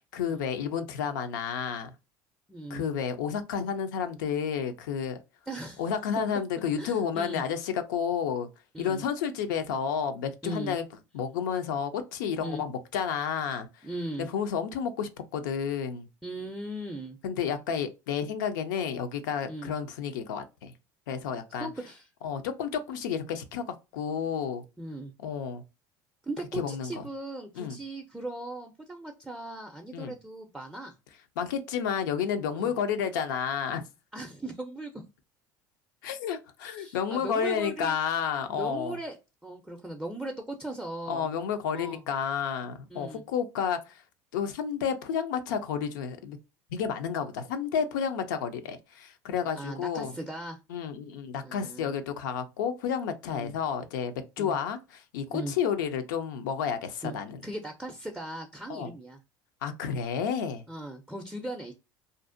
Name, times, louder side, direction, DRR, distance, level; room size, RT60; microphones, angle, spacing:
voice 1, 0.1-1.9 2.7-5.2 5.8-8.5 8.8-10.9 11.1-13.7 14.3-16.1 17.2-20.7 21.1-21.7 22.2-24.6 25.2-25.6 26.5-27.0 27.6-27.8 29.9-30.1 31.4-33.8 36.0-39.0 41.1-44.0 44.3-46.4 46.7-50.1 50.7-57.4 58.7-58.9 59.6-60.6, left 7 dB, 85° left, 0.4 m, -31 dB
voice 2, 2.5-2.8 5.5-5.8 6.8-7.4 8.7-9.0 10.4-10.8 12.4-12.6 13.8-14.3 16.2-17.2 19.5-19.7 21.6-22.1 24.8-25.1 26.2-31.0 32.5-32.7 34.1-35.0 36.8-38.0 38.5-39.2 39.4-41.3 41.7-42.0 42.9-43.2 49.5-50.6 51.4-52.0 53.3-53.5 54.4-54.6 55.3-55.5 57.0-57.2 57.4-59.2 60.7-61.7, right 1 dB, 5° right, 0.4 m, -38 dB
2.5 x 2.1 x 2.5 m
supercardioid pair, 95°, 10 cm